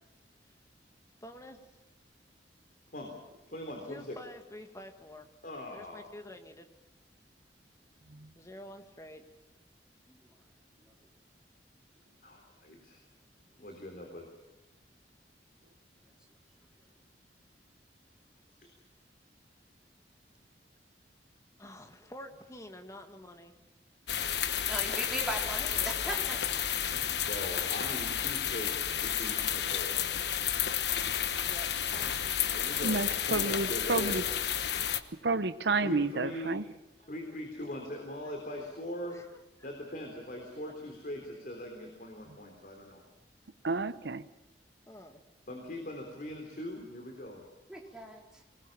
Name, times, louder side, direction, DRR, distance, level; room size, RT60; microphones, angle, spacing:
voice 1, 1.2-1.7 3.9-5.3 5.7-6.7 8.4-9.2 21.6-23.6 25.5-27.1 31.4-32.3 36.3-36.4 37.0-37.1 38.2-38.6 39.1-39.7 44.9-45.2, left 1 dB, 20° left, 6 dB, 2.0 m, -49 dB
voice 2, 3.5-4.2 5.4-6.1 12.2-13.0 13.6-14.3 24.9-25.1 26.9-30.0 32.5-34.2 35.8-36.6 37.1-39.2 39.6-43.0 45.5-47.4, left 1 dB, 50° left, 2 dB, 3.7 m, -41 dB
sound 1, 24.1-35.0, left 9 dB, 70° left, 1.2 m, -31 dB
voice 3, 24.7-26.2 47.7-48.2, right 1 dB, 5° right, -1 dB, 3.8 m, -37 dB
voice 4, 32.8-34.2 35.2-36.6 43.6-44.2, right 3 dB, 75° right, 13 dB, 0.9 m, -30 dB
24.5 x 20.0 x 7.3 m, 0.99 s
head